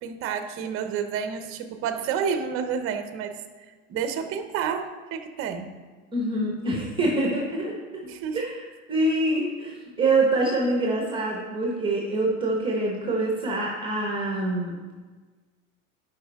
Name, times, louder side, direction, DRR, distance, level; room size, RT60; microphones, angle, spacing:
voice 1, 0.0-3.4 3.9-5.8 8.0-8.4, right 7 dB, 35° right, 8 dB, 0.7 m, -30 dB
voice 2, 6.1-7.7 8.4-14.8, right 2 dB, 15° right, -2 dB, 1.2 m, -25 dB
11.0 x 5.2 x 3.5 m, 1.4 s
supercardioid pair, 140°, 38 cm